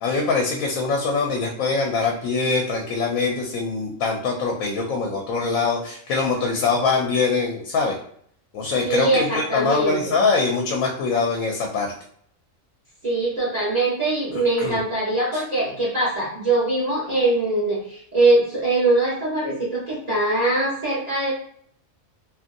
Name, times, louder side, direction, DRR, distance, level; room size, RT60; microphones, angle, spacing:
voice 1, 0.0-8.0 8.5-11.9 14.3-14.8 15.3-15.4, left 4 dB, 80° left, 1 dB, 1.0 m, -23 dB
voice 2, 8.8-10.2 13.0-21.3, right 2 dB, 30° right, -8 dB, 1.1 m, -22 dB
2.8 x 2.5 x 2.6 m, 0.63 s
omnidirectional pair, 1.4 m